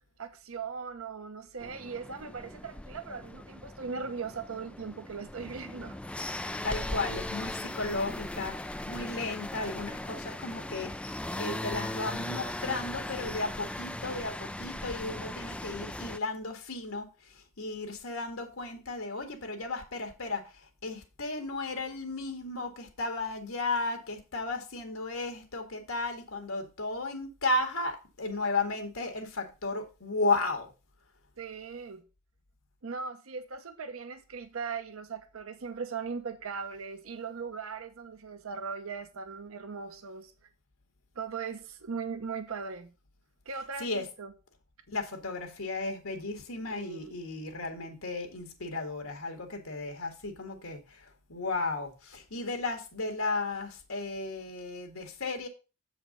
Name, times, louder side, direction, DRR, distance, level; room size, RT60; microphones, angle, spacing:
voice 1, 0.2-6.0 6.2-6.3 31.4-32.0 32.8-40.3 41.2-42.9 43.5-44.3 46.7-47.1, right 5 dB, 90° right, 0.8 m, -39 dB
sound 1, 1.6-16.2, left 1 dB, 5° left, 0.3 m, -38 dB
voice 2, 6.6-8.6 8.9-20.4 20.8-30.7 43.5-44.1 44.9-55.5, left 3 dB, 85° left, 2.0 m, -34 dB
7.5 x 5.0 x 5.3 m
head